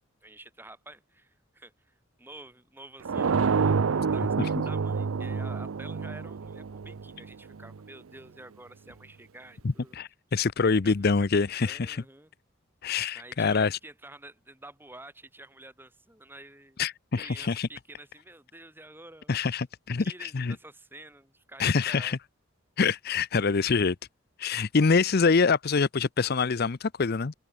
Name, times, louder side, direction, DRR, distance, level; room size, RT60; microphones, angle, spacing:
voice 1, 0.2-10.0 10.8-11.1 11.6-12.3 13.1-16.8 17.2-19.4 20.0-22.2, right 2 dB, 10° right, 4.0 m, -49 dB
sound 1, 3.1-7.8, right 5 dB, 85° right, 0.6 m, -28 dB
voice 2, 9.9-12.0 12.8-13.8 16.8-17.7 19.3-20.5 21.6-22.2 22.8-24.0 24.4-27.3, left 4 dB, 50° left, 0.6 m, -25 dB
open air
head